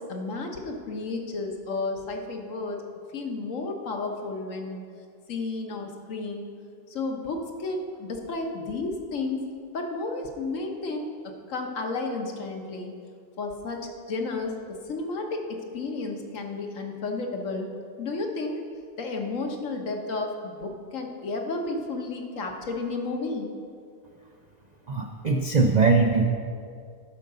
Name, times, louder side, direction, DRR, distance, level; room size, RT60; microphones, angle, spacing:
voice 1, 0.0-2.8 3.1-4.8 5.3-6.5 6.9-9.4 9.7-11.1 11.5-12.9 13.4-14.5 14.9-17.7 18.0-18.6 19.0-23.5, left 3 dB, 60° left, 3 dB, 1.4 m, -32 dB
voice 2, 24.9-26.2, right 4 dB, 85° right, 2 dB, 0.3 m, -21 dB
11.5 x 5.2 x 6.6 m, 2.2 s
omnidirectional pair, 1.6 m